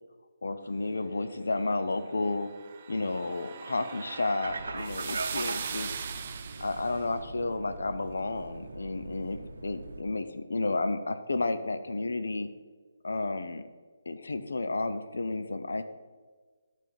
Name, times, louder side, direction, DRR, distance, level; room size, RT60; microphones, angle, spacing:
voice 1, 0.4-2.5 2.9-5.9 6.6-12.5 13.0-13.6 14.1-15.8, left 3 dB, 90° left, 10 dB, 0.7 m, -32 dB
sound 1, 2.3-7.0, right 7 dB, 35° right, 0.4 m, -39 dB
sound 2, 4.4-10.0, right 2 dB, 80° right, 0.9 m, -40 dB
11.0 x 3.7 x 5.2 m, 1.4 s
hypercardioid pair, 170°, 0 cm